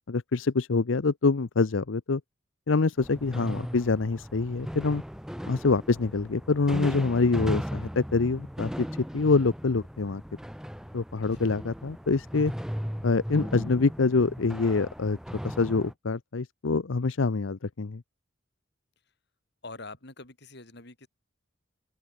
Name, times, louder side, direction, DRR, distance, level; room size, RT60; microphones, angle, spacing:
voice 1, 0.1-2.2 2.7-5.0 5.5-8.7 9.1-10.2 10.9-12.5 13.0-15.2 15.4-18.0, left 4 dB, 85° left, 0.7 m, -25 dB
sound 1, 3.0-15.9, equal, 5° right, 1.6 m, -37 dB
voice 2, 11.1-11.5 19.6-21.1, left 3 dB, 60° left, 5.1 m, -45 dB
open air
head